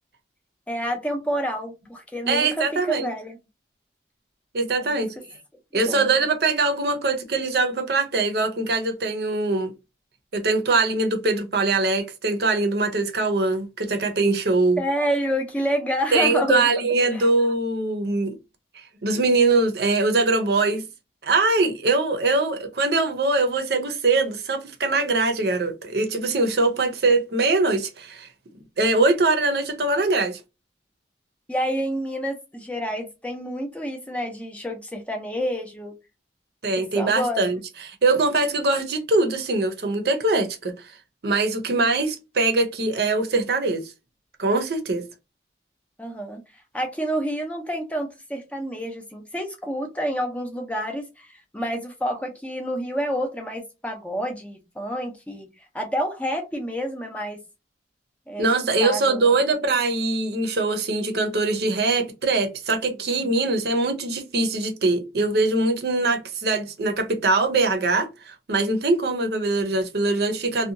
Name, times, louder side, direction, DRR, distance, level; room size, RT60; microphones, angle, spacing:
voice 1, 0.7-3.4 4.8-5.0 5.8-6.1 14.8-16.7 17.1-17.3 31.5-35.9 36.8-37.4 46.0-46.4 46.7-51.3 51.5-55.5 55.7-57.4 58.3-58.5 58.8-59.3, equal, 10° left, 0.5 m, -28 dB
voice 2, 2.3-3.1 4.5-5.1 5.7-9.7 10.3-14.8 16.1-18.3 18.7-20.8 21.2-28.3 28.8-30.4 36.6-37.6 37.9-40.7 41.2-43.9 44.4-45.0 58.4-70.7, right 3 dB, 60° right, 0.6 m, -22 dB
2.7 x 2.2 x 2.5 m
head